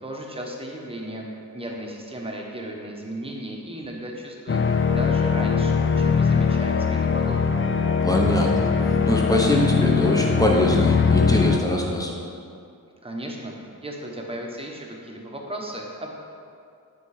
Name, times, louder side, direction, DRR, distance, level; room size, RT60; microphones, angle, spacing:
voice 1, 0.0-1.3 1.5-4.6 4.9-7.5 13.0-13.5 13.8-16.1, right 1 dB, 15° right, -1 dB, 1.0 m, -35 dB
sound 1, 4.5-11.6, left 5 dB, 35° left, 0.4 m, -21 dB
voice 2, 8.0-12.1, left 1 dB, 10° left, -1 dB, 0.9 m, -23 dB
9.9 x 4.5 x 4.9 m, 2.4 s
wide cardioid pair, 145°, 37 cm